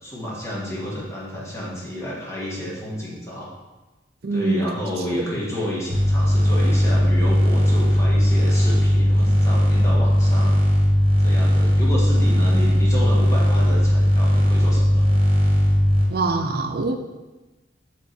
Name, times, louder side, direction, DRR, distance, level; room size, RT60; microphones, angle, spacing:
voice 1, 0.0-3.5 4.3-10.6 11.2-15.0, equal, 15° left, -6 dB, 1.6 m, -30 dB
voice 2, 4.2-4.6 16.1-17.0, right 3 dB, 60° right, 6 dB, 0.6 m, -23 dB
sound 1, 5.9-16.0, equal, 30° right, 1.4 m, -18 dB
7.3 x 3.3 x 4.3 m, 1.1 s
head